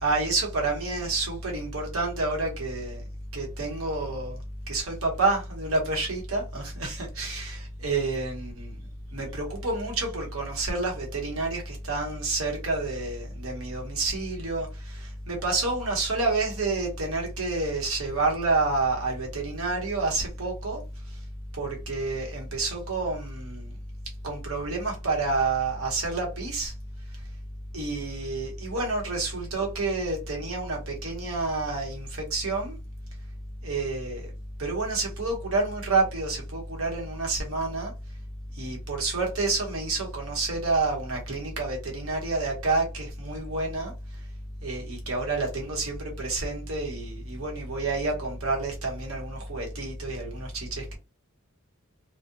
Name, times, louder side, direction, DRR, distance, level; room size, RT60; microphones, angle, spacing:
voice 1, 0.0-3.0 3.3-4.4 4.7-8.7 9.1-20.8 21.6-23.7 24.2-26.7 27.7-32.8 33.6-34.3 34.6-37.9 38.5-43.9 44.6-51.0, right 3 dB, 80° right, 1.0 m, -29 dB
2.7 x 2.1 x 2.4 m
head